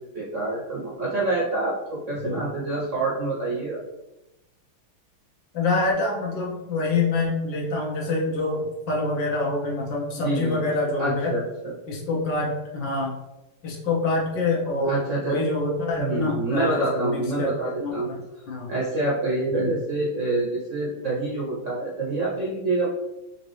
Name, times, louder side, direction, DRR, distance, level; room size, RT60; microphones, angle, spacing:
voice 1, 0.1-3.8 10.1-10.6 11.0-11.7 14.9-15.4 16.0-18.2 18.7-22.9, right 2 dB, 55° right, -5 dB, 0.8 m, -27 dB
voice 2, 5.5-11.3 11.9-13.1 13.6-15.0 15.2-18.2 18.5-18.7 19.5-19.7, left 2 dB, 65° left, -3 dB, 1.6 m, -26 dB
5.7 x 2.7 x 3.1 m, 0.96 s
omnidirectional pair, 2.2 m